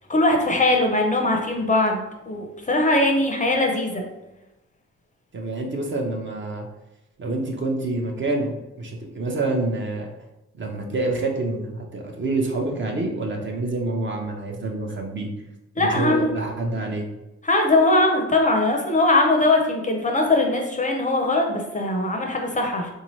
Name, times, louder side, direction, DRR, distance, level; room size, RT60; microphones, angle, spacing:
voice 1, 0.1-4.0 15.8-16.3 17.4-22.9, left 2 dB, 25° left, 2 dB, 0.5 m, -21 dB
voice 2, 5.3-6.7 7.2-10.1 10.6-15.3 15.8-17.0, right 2 dB, 40° right, 2 dB, 0.7 m, -27 dB
3.6 x 2.7 x 3.1 m, 0.97 s
cardioid pair, 105°, 29 cm